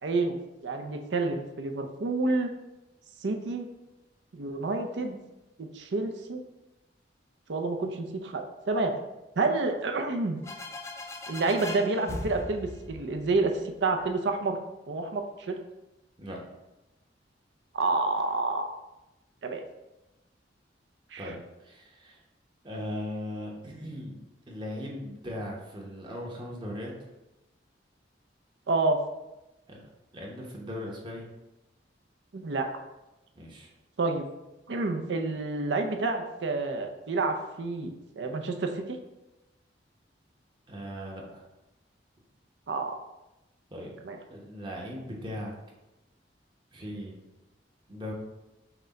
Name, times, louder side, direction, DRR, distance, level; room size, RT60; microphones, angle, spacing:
voice 1, 0.0-0.4 0.6-2.5 3.2-3.7 4.3-5.2 5.6-6.4 7.5-8.9 9.4-10.4 11.3-13.5 13.8-14.6 14.9-15.6 17.7-18.7 19.4-19.6 21.1-21.3 28.7-29.0 32.3-32.7 34.0-34.3 34.7-39.0 42.7-42.9 44.0-44.2, right 3 dB, 75° right, 4 dB, 0.6 m, -29 dB
sound 1, 10.4-14.1, left 2 dB, 15° left, 0.3 m, -40 dB
voice 2, 21.2-22.2 22.6-24.2 24.5-27.1 29.7-29.8 30.1-31.3 33.4-33.7 40.7-41.4 43.7-43.9 44.3-45.5 46.7-47.2 47.9-48.1, left 1 dB, 25° right, -2 dB, 0.9 m, -38 dB
5.9 x 2.2 x 3.9 m, 0.98 s
head